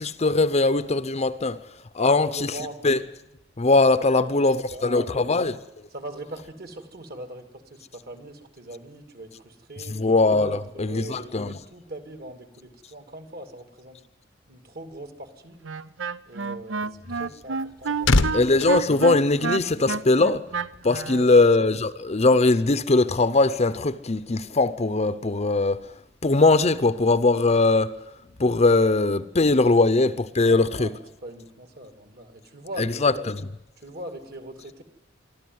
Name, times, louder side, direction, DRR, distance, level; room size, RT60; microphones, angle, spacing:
voice 1, 0.0-1.6 1.9-2.5 2.8-3.0 3.6-5.6 9.9-11.6 18.3-20.5 20.8-25.9 26.2-28.0 28.4-30.9 32.8-33.4, left 3 dB, 35° left, 0.7 m, -20 dB
voice 2, 2.0-2.8 4.1-5.3 5.9-9.9 10.5-14.0 14.5-15.6 16.3-18.6 21.0-21.3 29.6-29.7 30.4-33.3 33.8-34.8, right 1 dB, 55° right, 2.5 m, -41 dB
Wind instrument woodwind instrument, 15.6-21.2, right 5 dB, 75° right, 0.7 m, -29 dB
sound 1, 17.3-20.0 20.3-20.5, left 2 dB, 85° left, 1.1 m, -26 dB
24.5 x 13.5 x 9.4 m
head